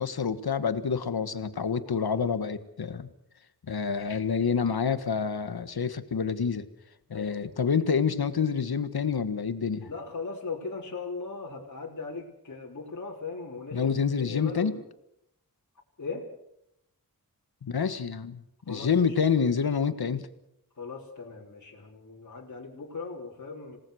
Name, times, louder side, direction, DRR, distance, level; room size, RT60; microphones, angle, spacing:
voice 1, 0.0-3.1 3.7-6.6 7.1-9.9 13.7-14.8 17.6-20.2, left 6 dB, 85° left, 12 dB, 1.6 m, -27 dB
voice 2, 7.1-7.7 9.9-14.8 16.0-16.3 18.7-19.1 20.8-23.8, left 4 dB, 50° left, -2 dB, 3.6 m, -38 dB
27.0 x 18.5 x 6.4 m, 0.78 s
wide cardioid pair, 85°, 37 cm